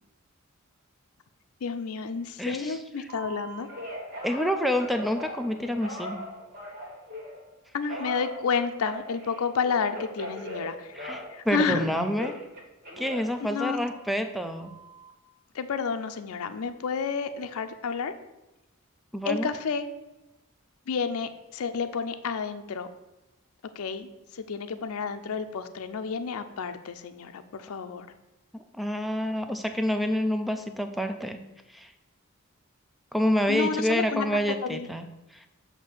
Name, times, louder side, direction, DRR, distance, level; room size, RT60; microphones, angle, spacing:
voice 1, 1.6-3.7 7.7-10.9 11.3-11.8 13.4-13.8 15.5-18.1 19.3-19.9 20.9-22.9 23.8-28.1 33.5-34.9, left 5 dB, 85° left, 9 dB, 0.5 m, -30 dB
voice 2, 2.4-3.1 4.2-6.2 10.9-12.4 13.0-14.7 19.1-19.5 28.5-31.4 31.7-31.9 33.1-35.0 35.3-35.5, equal, ahead, 6 dB, 0.3 m, -28 dB
Telephone, 3.1-7.4 7.9-11.3 11.6-14.1 14.6-15.1, equal, 40° right, 1.1 m, -40 dB
7.5 x 2.7 x 6.0 m, 0.99 s
head